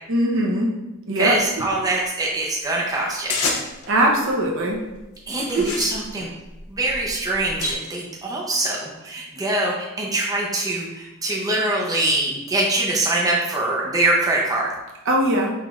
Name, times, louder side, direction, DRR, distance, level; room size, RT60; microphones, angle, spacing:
voice 1, 0.1-0.7 1.1-1.4 3.9-4.8 5.5-5.7 15.1-15.5, right 1 dB, 65° right, -1 dB, 0.8 m, -20 dB
voice 2, 1.1-3.4 5.3-6.3 6.7-14.7, right 2 dB, 15° right, -3 dB, 0.6 m, -23 dB
sound 1, 3.3-3.9 4.7-5.0 5.4-7.7, left 4 dB, 75° left, 0.6 m, -29 dB
5.6 x 3.1 x 2.4 m, 1.0 s
head